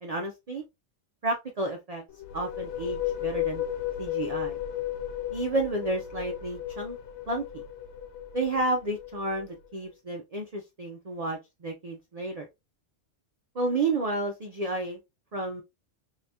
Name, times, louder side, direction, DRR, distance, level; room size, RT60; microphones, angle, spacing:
voice 1, 0.0-0.6 1.2-2.0 2.3-3.6 4.0-4.6 5.3-7.0 7.3-7.6 8.3-12.5 13.5-15.0 15.3-15.6, right 2 dB, 55° right, 2 dB, 0.4 m, -31 dB
sound 1, 2.1-9.7, left 11 dB, 70° left, 0.8 m, -34 dB
3.4 x 2.8 x 2.7 m, 0.23 s
omnidirectional pair, 1.3 m